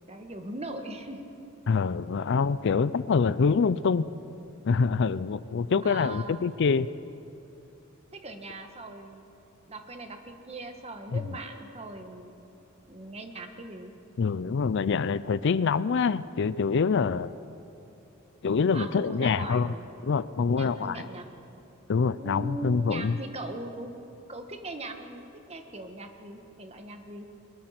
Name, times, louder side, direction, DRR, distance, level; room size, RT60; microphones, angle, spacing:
voice 1, 0.1-1.2 5.8-6.4 8.1-9.2 9.7-12.3 12.9-13.9 18.7-19.8 20.5-21.3 22.2-23.9 24.3-27.3, right 2 dB, 30° right, 5 dB, 1.5 m, -40 dB
voice 2, 1.7-4.0 4.7-6.9 11.1-11.2 14.2-17.3 18.4-19.7 20.0-21.0 21.9-23.2, left 5 dB, 60° left, 17 dB, 0.4 m, -25 dB
22.0 x 20.5 x 5.9 m, 2.8 s
head